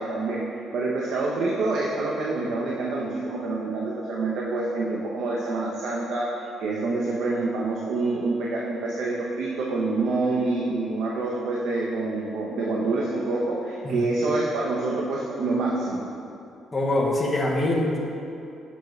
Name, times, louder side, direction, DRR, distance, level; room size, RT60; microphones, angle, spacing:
voice 1, 0.0-6.3 6.6-16.0, right 3 dB, 70° right, -3 dB, 0.7 m, -27 dB
voice 2, 16.7-18.0, left 1 dB, 15° left, -3 dB, 0.7 m, -24 dB
7.0 x 6.0 x 3.1 m, 2.6 s
cardioid pair, 165°, 0 cm